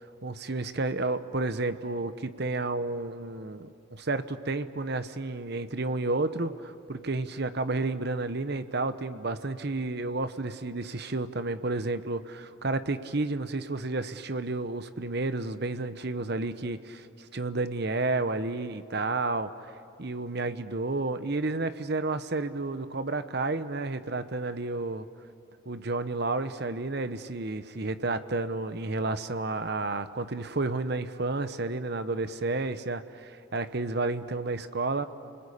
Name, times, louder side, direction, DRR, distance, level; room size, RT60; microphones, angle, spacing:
voice 1, 0.2-17.1 17.3-19.5 20.0-25.1 25.7-35.1, right 2 dB, 50° right, 11 dB, 0.9 m, -31 dB
29.5 x 21.0 x 8.5 m, 2.5 s
head